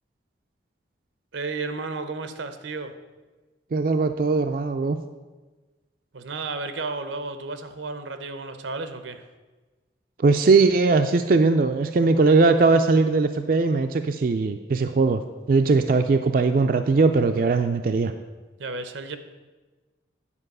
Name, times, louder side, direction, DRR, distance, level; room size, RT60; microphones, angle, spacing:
voice 1, 1.3-2.9 6.1-9.2 18.6-19.2, right 3 dB, 90° right, 9 dB, 0.8 m, -33 dB
voice 2, 3.7-5.0 10.2-15.2 15.5-18.1, right 3 dB, 50° right, 7 dB, 0.4 m, -20 dB
9.8 x 4.8 x 6.6 m, 1.2 s
head